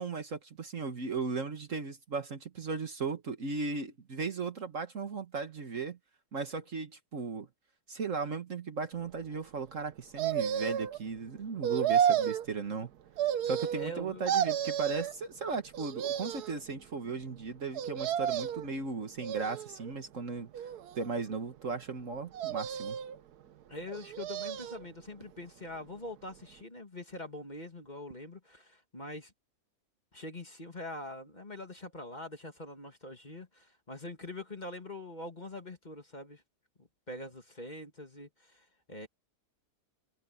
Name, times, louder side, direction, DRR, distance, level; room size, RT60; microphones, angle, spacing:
voice 1, 0.0-6.0 6.3-7.5 7.9-12.9 13.4-20.7 21.0-23.0, right 4 dB, 50° right, 1.8 m, -36 dB
sound 1, 10.2-11.0 11.6-12.4 13.2-14.0 14.3-15.1 15.7-16.6 17.7-18.7 19.2-19.9 20.5-21.3 22.3-23.2 23.9-24.8 25.2-25.3, right 9 dB, 75° right, 1.4 m, -31 dB
voice 2, 13.7-14.3 23.7-29.3 30.1-36.4 36.8-39.1, left 1 dB, 25° left, 2.5 m, -44 dB
omnidirectional pair, 1.7 m